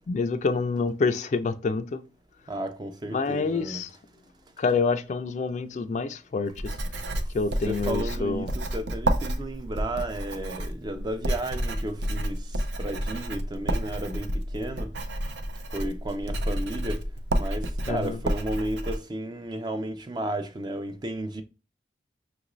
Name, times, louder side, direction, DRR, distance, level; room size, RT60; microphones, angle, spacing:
voice 1, 0.1-2.0 3.1-3.9 4.6-6.8 7.3-8.5 17.9-18.2, left 4 dB, 40° left, 0.3 m, -27 dB
voice 2, 2.5-3.8 7.7-14.9 15.7-17.0 17.4-21.4, right 1 dB, 25° right, 0.4 m, -33 dB
Writing, 6.5-19.0, right 1 dB, 85° right, 0.6 m, -30 dB
5.8 x 2.5 x 3.0 m
head